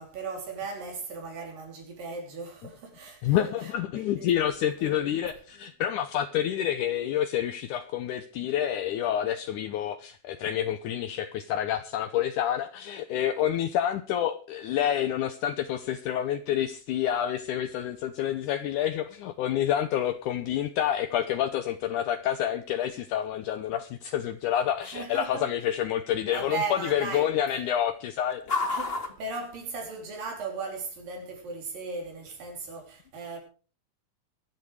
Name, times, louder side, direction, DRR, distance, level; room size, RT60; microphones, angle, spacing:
voice 1, 0.0-4.3 4.8-5.1 24.8-25.5 26.3-27.3 28.7-33.4, right 4 dB, 75° right, 5.0 m, -37 dB
voice 2, 3.2-28.6, left 10 dB, 75° left, 2.1 m, -28 dB
sound 1, 15.5-30.3, left 3 dB, 25° left, 1.6 m, -42 dB
23.0 x 8.4 x 4.8 m
omnidirectional pair, 4.0 m